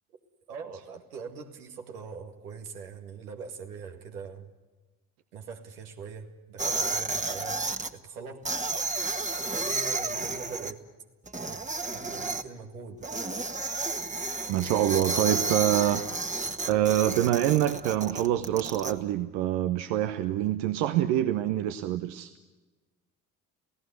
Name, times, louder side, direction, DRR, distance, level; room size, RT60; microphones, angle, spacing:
voice 1, 0.5-4.5 5.3-8.7 9.5-10.9 11.4-11.6 11.9-13.2, right 5 dB, 80° right, 5 dB, 2.1 m, -42 dB
sound 1, 6.6-7.9 8.4-10.7 11.3-12.4 13.0-18.9, right 3 dB, 15° right, 1.6 m, -31 dB
voice 2, 14.5-16.0 16.7-22.3, right 12 dB, 65° right, 10 dB, 1.1 m, -26 dB
27.5 x 17.5 x 8.2 m, 1.3 s
figure-of-eight pair, 50°, 44 cm